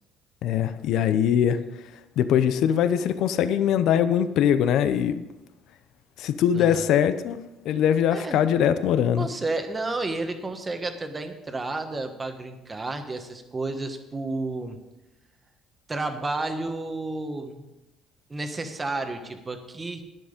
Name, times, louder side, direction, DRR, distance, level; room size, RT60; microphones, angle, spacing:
voice 1, 0.4-1.6 2.2-5.2 6.2-9.3, left 9 dB, 65° left, 12 dB, 0.6 m, -22 dB
voice 2, 6.5-6.9 8.1-8.4 9.2-14.8 15.9-17.7 18.3-20.0, right 2 dB, 20° right, 7 dB, 1.2 m, -31 dB
11.0 x 9.7 x 5.2 m, 1.0 s
cardioid pair, 140°, 0 cm